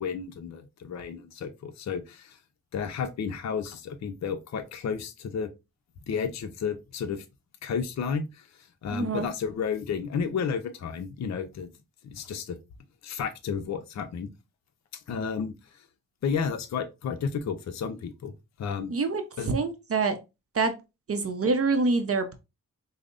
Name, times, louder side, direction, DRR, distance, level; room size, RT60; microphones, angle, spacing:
voice 1, 0.0-2.4 2.7-5.5 6.1-7.2 7.6-11.7 12.0-12.6 13.0-14.3 15.1-15.8 16.2-18.3 18.6-18.9 19.4-19.5, left 6 dB, 50° left, 0.6 m, -32 dB
voice 2, 8.9-9.3 18.9-20.2 20.5-20.7 21.1-22.4, right 3 dB, 40° right, 0.6 m, -26 dB
5.0 x 2.0 x 2.5 m
cardioid pair, 55°, 36 cm